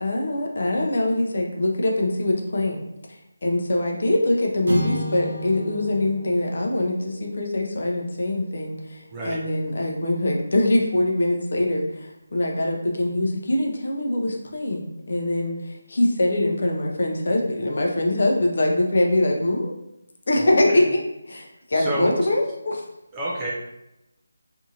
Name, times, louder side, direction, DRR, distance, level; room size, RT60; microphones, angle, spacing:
voice 1, 0.0-2.8 3.1-19.7 20.3-21.0 21.3-22.8, left 1 dB, 50° left, 0 dB, 0.5 m, -23 dB
sound 1, 4.7-9.1, equal, 60° right, 0.8 m, -34 dB
voice 2, 20.4-20.9 21.7-22.1 23.1-23.5, right 1 dB, 10° right, -6 dB, 0.4 m, -29 dB
2.6 x 2.5 x 2.8 m, 0.89 s
figure-of-eight pair, 175°, 0 cm